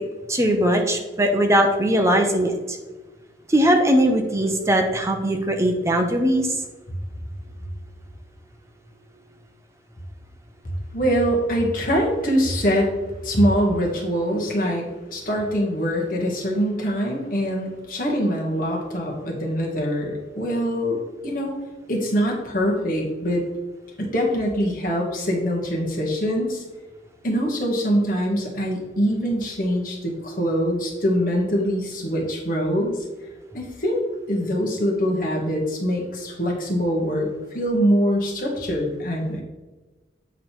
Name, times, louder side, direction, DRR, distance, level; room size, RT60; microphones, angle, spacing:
voice 1, 0.3-2.8 3.5-6.5, equal, 15° right, 3 dB, 0.7 m, -20 dB
voice 2, 10.9-13.0 13.2-21.0 21.2-21.5 21.9-23.4 24.0-26.6 27.2-33.0 33.5-37.3 37.5-39.4, equal, 45° left, -2 dB, 1.6 m, -23 dB
8.3 x 3.9 x 4.4 m, 1.2 s
head